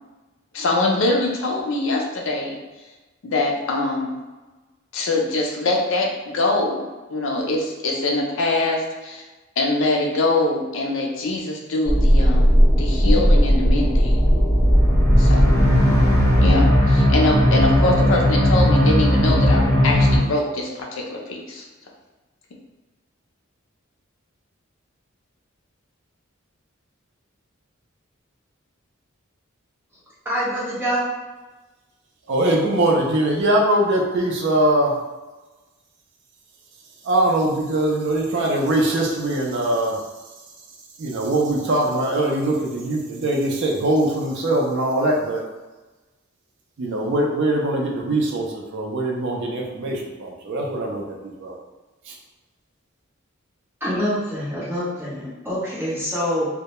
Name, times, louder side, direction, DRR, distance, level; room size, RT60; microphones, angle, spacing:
voice 1, 0.5-2.6 3.2-4.1 4.9-6.8 7.1-9.2 9.6-14.2 15.2-15.6 16.4-21.6, left 2 dB, 65° left, 0 dB, 0.5 m, -23 dB
sound 1, 11.9-20.2, equal, 15° left, 0.5 m, -16 dB
voice 2, 30.2-31.0 53.8-56.5, equal, 10° right, -10 dB, 0.9 m, -25 dB
voice 3, 32.3-34.9 37.0-40.0 41.0-45.4 46.8-51.6 52.1-52.2, right 1 dB, 60° right, -1 dB, 0.4 m, -22 dB
2.2 x 2.1 x 2.9 m, 1.2 s
head